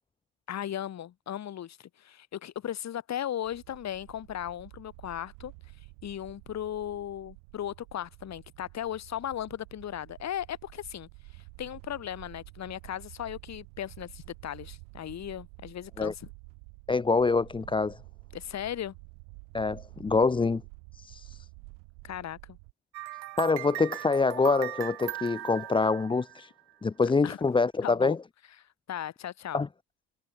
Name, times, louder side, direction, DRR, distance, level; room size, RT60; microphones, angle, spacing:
voice 1, 0.5-5.5 6.0-16.3 18.3-18.9 22.0-22.6 27.2-27.4 27.8-28.2 28.9-29.6, left 10 dB, 35° left, 1.2 m, -37 dB
sound 1, 3.4-22.7, right 40 dB or more, 70° right, 4.6 m, -50 dB
voice 2, 16.9-18.0 19.5-20.6 20.9-21.5 23.4-26.5 26.8-28.2 29.5-29.7, left 4 dB, 10° left, 0.6 m, -26 dB
sound 2, 22.9-26.7, right 16 dB, 90° right, 0.7 m, -39 dB
hypercardioid pair, 75°, 50 cm